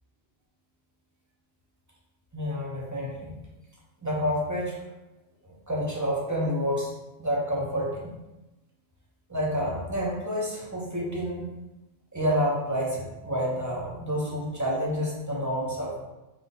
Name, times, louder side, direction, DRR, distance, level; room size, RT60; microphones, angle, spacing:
voice 1, 2.3-3.3 4.0-4.7 5.7-6.9 7.2-8.1 9.3-11.4 12.1-16.0, equal, 15° right, -4 dB, 0.7 m, -28 dB
3.7 x 2.5 x 3.9 m, 1.0 s
omnidirectional pair, 1.3 m